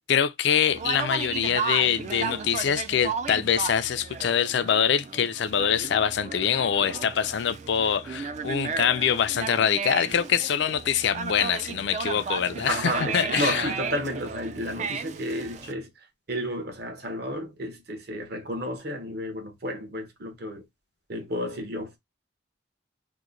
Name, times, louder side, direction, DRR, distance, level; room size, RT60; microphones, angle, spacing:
voice 1, 0.1-13.7, left 8 dB, 65° left, 0.4 m, -24 dB
Conversation, 0.7-15.7, right 5 dB, 40° right, 0.3 m, -34 dB
voice 2, 12.7-15.9 16.3-20.6 21.1-22.0, equal, 55° right, 0.9 m, -32 dB
2.9 x 2.1 x 3.7 m
head